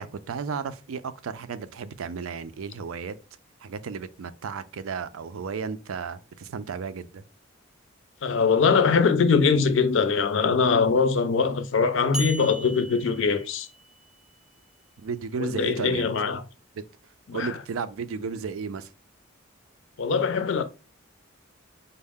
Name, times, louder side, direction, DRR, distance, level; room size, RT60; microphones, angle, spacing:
voice 1, 0.0-3.2 3.6-7.2 15.0-16.1 16.7-16.8 17.3-18.9, right 5 dB, 85° right, 0.4 m, -34 dB
voice 2, 8.2-13.7 15.4-16.4 17.3-17.5 20.0-20.6, left 5 dB, 65° left, 0.5 m, -22 dB
sound 1, 12.1-14.2, right 2 dB, 5° right, 0.4 m, -38 dB
5.3 x 2.1 x 3.5 m
head